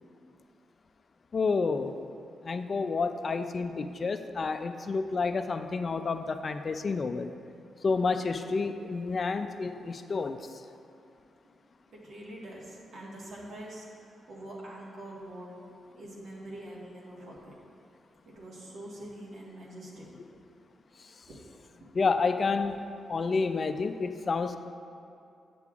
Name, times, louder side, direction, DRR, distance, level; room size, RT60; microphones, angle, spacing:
voice 1, 1.3-2.0 2.4-7.3 7.8-10.4 21.9-22.8 23.1-24.6, left 4 dB, 40° left, 9 dB, 0.3 m, -29 dB
voice 2, 11.9-15.5 15.9-17.6 18.2-20.4 21.3-21.4 21.8-21.9, right 1 dB, 70° right, -5 dB, 1.5 m, -45 dB
8.1 x 6.8 x 2.4 m, 2.6 s
cardioid pair, 110°, 0 cm